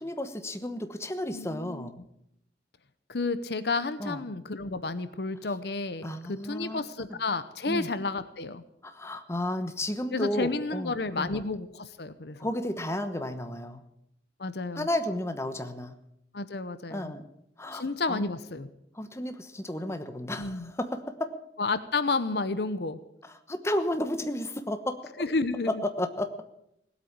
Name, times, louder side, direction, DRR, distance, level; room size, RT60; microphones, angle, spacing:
voice 1, 0.0-2.0 4.0-4.2 6.0-6.8 7.1-7.2 7.6-7.9 8.8-11.4 12.4-13.8 14.8-15.9 16.9-17.2 17.6-17.8 18.1-18.3 18.9-21.3 23.2-25.0 25.8-26.3, left 1 dB, 15° left, 8 dB, 1.1 m, -33 dB
voice 2, 1.3-1.9 3.1-8.6 10.1-12.5 14.4-14.9 16.3-17.1 17.7-18.7 20.4-20.7 21.6-23.0 25.2-25.8, left 3 dB, 65° left, 13 dB, 0.9 m, -31 dB
18.0 x 8.5 x 8.7 m, 0.79 s
head